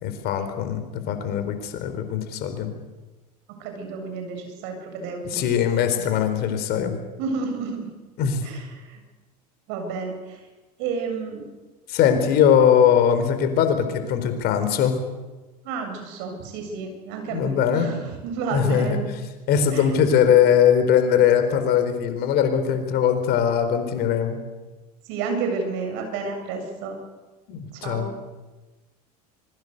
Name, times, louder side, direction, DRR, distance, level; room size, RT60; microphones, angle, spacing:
voice 1, 0.0-2.7 5.3-7.0 8.2-8.5 11.9-14.9 17.3-17.9 18.5-19.0 19.5-24.4 27.5-28.1, left 8 dB, 50° left, 8 dB, 4.4 m, -21 dB
voice 2, 3.6-5.5 7.2-7.9 8.4-9.0 9.7-10.4 10.8-11.5 15.6-19.1 19.7-19.9 25.0-27.0 27.7-28.1, right 4 dB, 60° right, 4 dB, 7.7 m, -31 dB
25.5 x 22.5 x 6.8 m, 1.2 s
hypercardioid pair, 80°, 20 cm